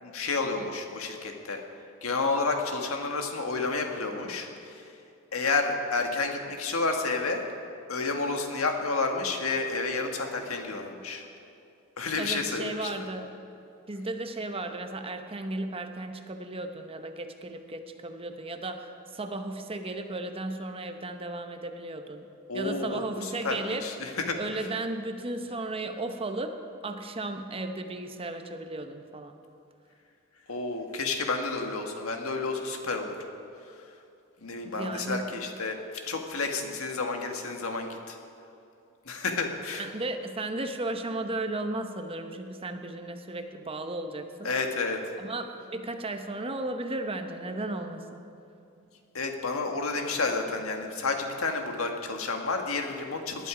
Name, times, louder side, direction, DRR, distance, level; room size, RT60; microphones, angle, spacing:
voice 1, 0.0-1.6 2.0-4.9 5.3-7.4 7.9-11.2 12.0-12.9 22.5-24.4 30.5-33.1 34.4-35.8 36.1-38.2 39.0-39.9 44.4-45.2 49.1-53.5, left 3 dB, 90° left, 3 dB, 1.6 m, -30 dB
voice 2, 12.2-13.4 13.9-22.3 22.5-26.5 26.8-29.4 34.6-35.3 39.8-44.5 45.2-48.2, right 2 dB, 25° right, 6 dB, 0.9 m, -35 dB
19.5 x 11.0 x 5.0 m, 2.6 s
head